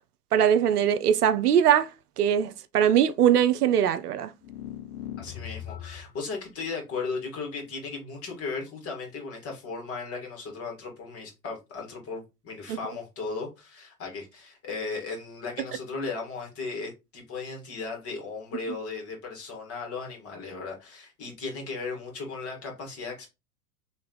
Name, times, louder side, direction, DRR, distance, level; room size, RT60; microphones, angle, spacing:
voice 1, 0.3-1.9 2.2-4.3 12.7-12.8, right 9 dB, 80° right, 0.6 m, -21 dB
sound 1, 4.4-6.2, left 11 dB, 70° left, 1.0 m, -39 dB
voice 2, 5.2-23.3, left 4 dB, 30° left, 2.0 m, -36 dB
3.3 x 3.2 x 3.9 m
hypercardioid pair, 95°, 45 cm